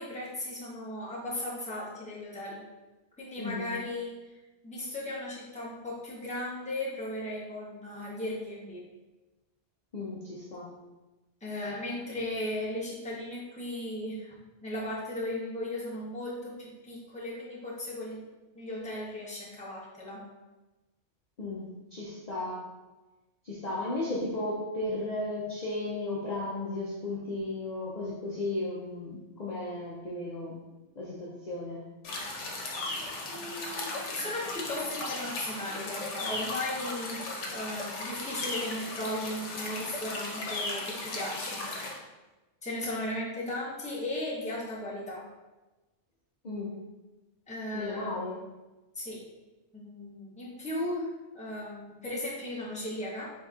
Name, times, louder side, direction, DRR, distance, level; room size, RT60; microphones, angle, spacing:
voice 1, 0.0-2.6 3.2-4.1 4.6-8.8 11.4-14.3 14.6-18.2 18.5-20.2 33.3-37.2 37.5-41.6 42.6-45.2 47.5-48.1 48.9-49.2 49.7-53.3, left 1 dB, 5° left, -6 dB, 0.8 m, -36 dB
voice 2, 3.4-3.7 9.9-10.7 21.4-21.6 21.9-22.6 23.4-30.6 31.0-31.9 46.4-46.7 47.7-48.4, left 2 dB, 45° left, -6 dB, 0.6 m, -35 dB
sound 1, 32.0-42.0, left 2 dB, 85° left, 1.1 m, -36 dB
4.0 x 3.7 x 2.4 m, 1.1 s
omnidirectional pair, 1.2 m